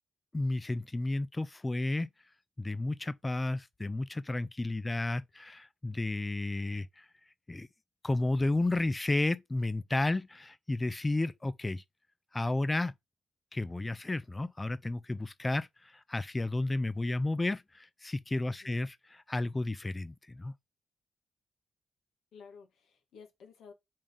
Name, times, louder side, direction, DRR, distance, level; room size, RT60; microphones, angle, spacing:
voice 1, 0.3-2.1 2.6-7.1 7.5-7.7 8.0-11.8 12.3-12.9 13.5-20.5, left 2 dB, 20° left, 0.4 m, -32 dB
voice 2, 18.4-18.8 22.3-23.7, left 5 dB, 85° left, 2.0 m, -54 dB
5.3 x 3.5 x 5.4 m
cardioid pair, 100°, 0 cm